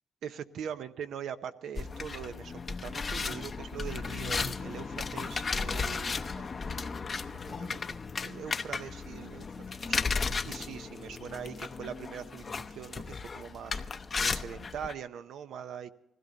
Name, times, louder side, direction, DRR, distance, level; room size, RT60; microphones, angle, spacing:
voice 1, 0.2-7.8 8.2-15.9, right 8 dB, 75° right, 10 dB, 0.7 m, -42 dB
sound 1, 1.8-14.9, left 4 dB, 35° left, 0.7 m, -35 dB
20.5 x 16.0 x 4.0 m, 0.95 s
cardioid pair, 90°, 0 cm